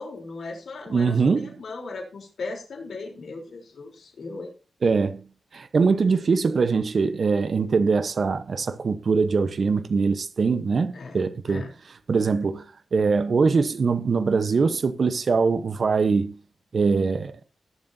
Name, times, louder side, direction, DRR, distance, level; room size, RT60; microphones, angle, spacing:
voice 1, 0.0-4.5 10.9-11.7, left 3 dB, 65° left, 3.7 m, -37 dB
voice 2, 0.9-1.5 4.8-5.2 5.5-11.6 12.1-12.6 12.9-16.3 16.7-17.3, right 4 dB, 50° right, 1.0 m, -22 dB
19.5 x 7.4 x 2.8 m
wide cardioid pair, 125°, 0 cm